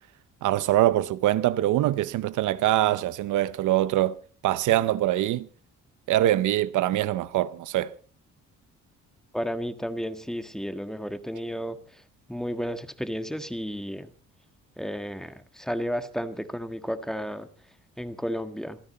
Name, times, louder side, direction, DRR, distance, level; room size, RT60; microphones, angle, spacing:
voice 1, 0.4-4.2 4.4-5.5 6.1-8.0, right 14 dB, 80° right, 0.7 m, -23 dB
voice 2, 9.3-11.8 12.3-14.1 14.8-17.5 18.0-18.8, equal, ahead, 1.6 m, -32 dB
27.0 x 9.8 x 4.1 m
cardioid pair, 90°, 30 cm